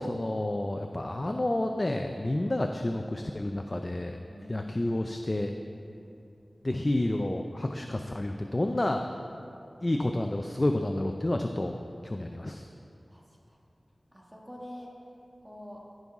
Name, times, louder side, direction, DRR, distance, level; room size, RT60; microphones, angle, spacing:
voice 1, 0.0-4.2 4.5-5.5 6.6-9.0 9.8-11.8 12.0-12.7, left 1 dB, 35° left, 5 dB, 0.4 m, -30 dB
voice 2, 4.3-4.6 5.9-6.1 13.1-13.2 13.5-13.6 14.1-14.9 15.4-15.8, left 1 dB, 15° right, -2 dB, 1.5 m, -46 dB
14.0 x 5.4 x 3.6 m, 2.7 s
wide cardioid pair, 60°, 0 cm